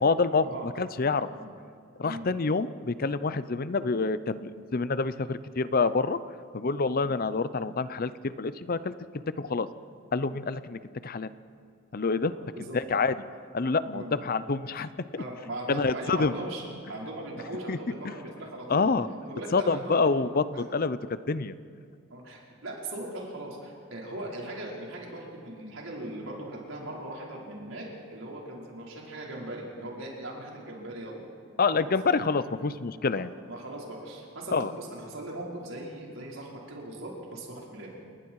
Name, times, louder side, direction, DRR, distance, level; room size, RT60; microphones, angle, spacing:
voice 1, 0.0-1.3 2.0-6.2 6.5-8.9 9.4-9.7 10.1-11.3 11.9-12.3 12.7-13.1 13.5-15.2 15.7-16.3 17.7-17.8 18.0-18.1 18.7-19.1 19.5-21.5 31.6-33.3 34.5-34.7, left 4 dB, 45° left, 14 dB, 0.6 m, -27 dB
voice 2, 12.3-12.8 13.9-14.1 15.1-18.9 19.2-20.3 20.5-20.6 22.1-31.2 31.7-32.3 33.1-38.0, right 1 dB, 75° right, -3 dB, 5.2 m, -39 dB
29.5 x 20.0 x 4.8 m, 2.2 s
head